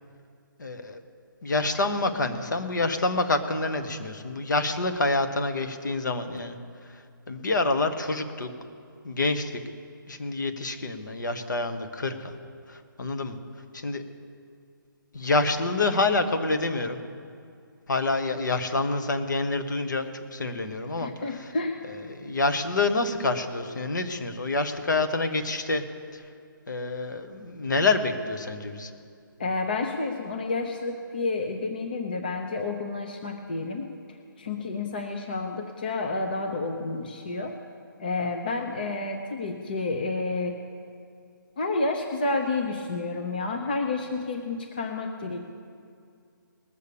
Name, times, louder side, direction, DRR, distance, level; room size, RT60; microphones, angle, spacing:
voice 1, 0.6-1.0 1.4-6.6 6.8-8.5 9.0-9.6 10.1-12.4 12.7-13.4 13.7-14.0 15.1-17.0 17.9-21.5 21.8-25.8 26.1-26.3 26.7-28.9, left 3 dB, 60° left, 8 dB, 1.2 m, -27 dB
voice 2, 21.0-21.8 29.4-33.9 34.4-37.6 38.0-40.6 41.6-45.4, left 3 dB, 25° left, 4 dB, 0.6 m, -30 dB
19.5 x 7.0 x 6.8 m, 2.3 s
hypercardioid pair, 175°, 12 cm